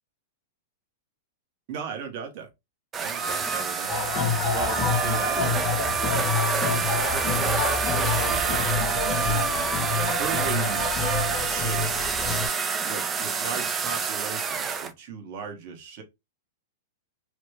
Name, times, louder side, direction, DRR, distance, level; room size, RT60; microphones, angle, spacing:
voice 1, 1.7-2.5 3.0-4.0 4.5-8.4 9.1-10.9 11.1-12.1 12.8-16.0, right 6 dB, 45° right, 0.9 m, -38 dB
sound 1, 2.9-14.9, right 6 dB, 15° right, 0.3 m, -27 dB
sound 2, 3.9-12.5, left 5 dB, 25° left, 0.8 m, -28 dB
3.1 x 2.1 x 3.1 m
supercardioid pair, 150°, 0 cm